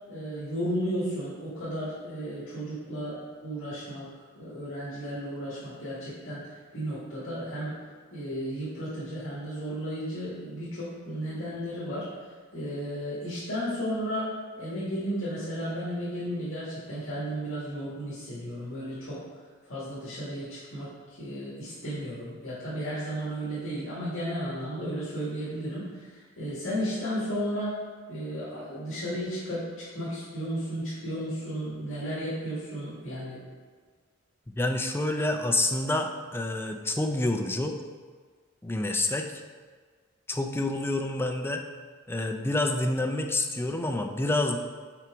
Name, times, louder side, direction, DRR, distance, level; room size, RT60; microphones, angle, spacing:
voice 1, 0.1-4.1 4.4-7.8 8.1-12.1 12.5-19.3 19.6-20.9 21.2-27.8 28.1-33.4, equal, 70° left, -9 dB, 1.9 m, -34 dB
voice 2, 34.6-37.8 38.6-39.3 40.3-41.6 42.1-44.6, left 2 dB, 10° left, 4 dB, 0.4 m, -28 dB
5.9 x 4.6 x 4.9 m, 1.5 s
head